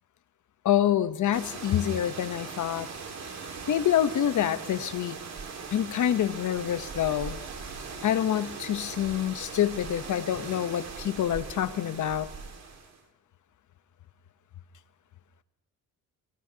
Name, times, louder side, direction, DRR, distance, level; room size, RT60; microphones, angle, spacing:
voice 1, 0.6-2.9 3.7-5.2 5.7-7.4 8.0-12.3, left 10 dB, 60° left, 12 dB, 0.9 m, -26 dB
sound 1, 1.3-13.0, right 5 dB, 50° right, 2.0 m, -40 dB
27.0 x 17.5 x 2.8 m, 1.0 s
cardioid pair, 115°, 35 cm